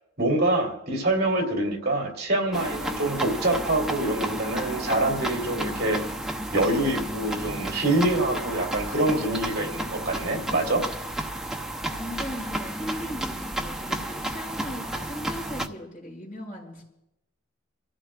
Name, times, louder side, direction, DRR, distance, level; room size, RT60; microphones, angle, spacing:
voice 1, 0.2-6.0 6.5-10.8, right 1 dB, 55° right, 1 dB, 3.0 m, -25 dB
sound 1, 2.5-15.7, right 1 dB, 5° right, 0.8 m, -32 dB
voice 2, 11.9-16.8, equal, 40° left, -5 dB, 6.4 m, -38 dB
28.5 x 15.0 x 2.5 m, 0.84 s
head